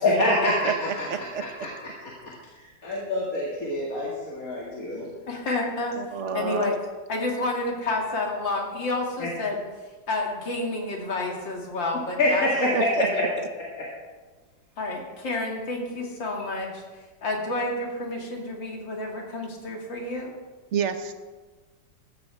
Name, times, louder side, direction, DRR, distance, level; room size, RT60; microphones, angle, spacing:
voice 1, 0.0-1.7 2.0-2.1 2.5-5.1 9.2-9.3 12.2-13.3 13.8-13.9, left 1 dB, 50° left, -5 dB, 2.6 m, -26 dB
voice 2, 1.1-1.4 6.0-6.7 12.7-13.1 20.7-21.1, right 7 dB, 50° right, 7 dB, 1.1 m, -28 dB
voice 3, 5.3-5.9 6.3-6.8 7.1-9.6 10.1-12.8 13.1-13.4 14.8-16.8 17.2-20.4, left 2 dB, 80° left, -1 dB, 3.0 m, -30 dB
15.5 x 13.5 x 3.5 m, 1.3 s
omnidirectional pair, 2.0 m